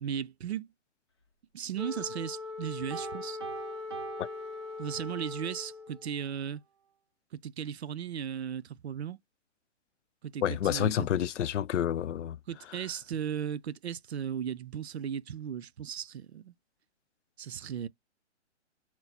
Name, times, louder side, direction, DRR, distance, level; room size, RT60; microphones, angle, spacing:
voice 1, 0.0-0.7 1.5-3.4 4.8-6.6 7.4-9.2 10.2-11.1 12.5-16.5 17.4-17.9, right 8 dB, 65° right, 0.6 m, -36 dB
Wind instrument woodwind instrument, 1.8-6.1, left 4 dB, 25° left, 0.6 m, -41 dB
Piano, 2.9-5.3, right 7 dB, 25° right, 0.6 m, -43 dB
voice 2, 10.4-12.4, left 10 dB, 85° left, 0.5 m, -29 dB
4.5 x 2.0 x 4.1 m
hypercardioid pair, 175°, 35 cm